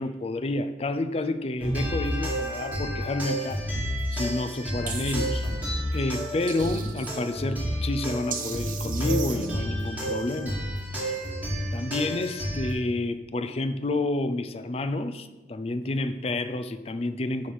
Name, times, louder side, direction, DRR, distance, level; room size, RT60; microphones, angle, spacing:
voice 1, 0.0-3.6 4.1-5.5 5.9-10.6 10.9-11.2 11.7-17.5, left 2 dB, 35° left, 10 dB, 0.4 m, -29 dB
sound 1, 1.6-12.7, equal, 10° right, 1.6 m, -30 dB
sound 2, 4.9-5.3 6.5-7.1 8.3-9.5, right 7 dB, 50° right, 0.8 m, -36 dB
9.7 x 3.3 x 5.8 m, 1.1 s
head